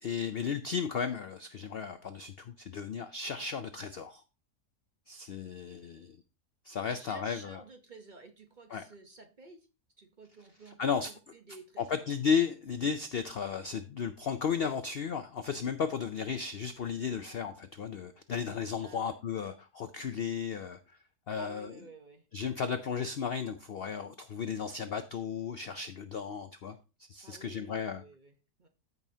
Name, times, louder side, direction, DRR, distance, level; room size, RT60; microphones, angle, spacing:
voice 1, 0.0-4.2 5.1-6.2 6.6-7.6 8.7-8.8 10.8-11.1 11.8-20.8 21.3-21.8 22.3-26.8 27.1-28.0, left 6 dB, 65° left, 9 dB, 0.6 m, -34 dB
voice 2, 6.9-9.7 10.0-12.1 18.8-19.1 21.3-22.2 27.2-28.3 28.6-28.7, right 3 dB, 35° right, 5 dB, 0.9 m, -52 dB
14.0 x 5.5 x 2.8 m, 0.31 s
omnidirectional pair, 1.6 m